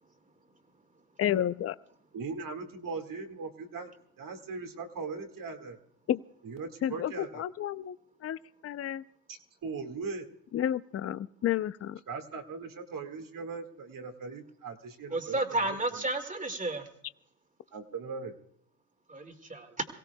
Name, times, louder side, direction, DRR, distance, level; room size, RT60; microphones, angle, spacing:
voice 1, 1.2-1.8 6.1-6.2 6.8-8.0 8.2-9.0 10.5-12.0, left 11 dB, 30° left, 15 dB, 0.6 m, -31 dB
voice 2, 2.1-5.8 6.4-7.4 9.3-10.3 12.1-16.0 17.7-18.4, right 4 dB, 40° right, 5 dB, 2.1 m, -39 dB
voice 3, 15.1-16.9 19.1-19.9, right 2 dB, 15° right, 5 dB, 2.3 m, -32 dB
27.5 x 16.5 x 2.3 m, 0.74 s
supercardioid pair, 80°, 48 cm